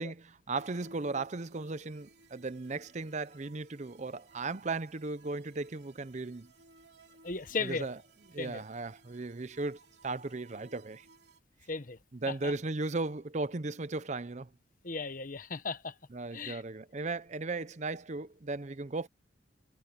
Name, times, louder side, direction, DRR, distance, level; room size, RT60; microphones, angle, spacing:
voice 1, 0.0-6.5 7.6-8.0 8.3-11.1 12.1-14.5 16.1-19.1, right 3 dB, 40° right, 0.7 m, -36 dB
sound 1, 0.5-11.4, right 2 dB, 65° right, 3.3 m, -59 dB
voice 2, 7.2-7.9 8.4-8.6 11.7-12.0 12.4-12.5 14.8-15.9 16.3-16.6, left 4 dB, 45° left, 1.1 m, -36 dB
head